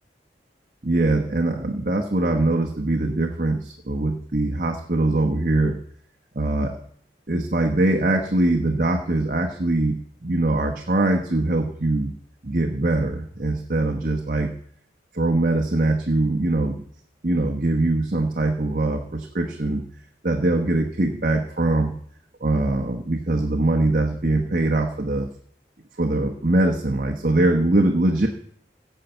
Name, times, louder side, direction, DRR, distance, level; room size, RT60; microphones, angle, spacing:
voice 1, 0.8-5.7 6.3-6.7 7.3-12.1 12.4-14.5 15.1-16.8 17.2-19.8 20.2-21.9 22.4-25.3 26.0-28.3, right 2 dB, 50° right, 1 dB, 1.2 m, -22 dB
16.0 x 5.7 x 8.0 m, 0.65 s
head